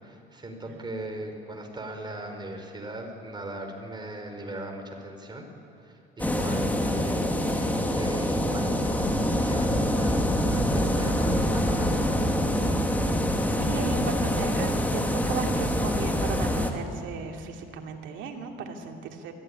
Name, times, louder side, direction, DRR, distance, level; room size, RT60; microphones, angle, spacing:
voice 1, 0.0-5.5 5.8-12.1, right 1 dB, 20° right, 3 dB, 4.3 m, -39 dB
sound 1, 6.2-16.7, left 1 dB, 10° left, 2.2 m, -25 dB
voice 2, 13.0-19.3, right 5 dB, 75° right, 3 dB, 2.6 m, -36 dB
21.5 x 15.0 x 9.8 m, 2.6 s
cardioid pair, 95°, 20 cm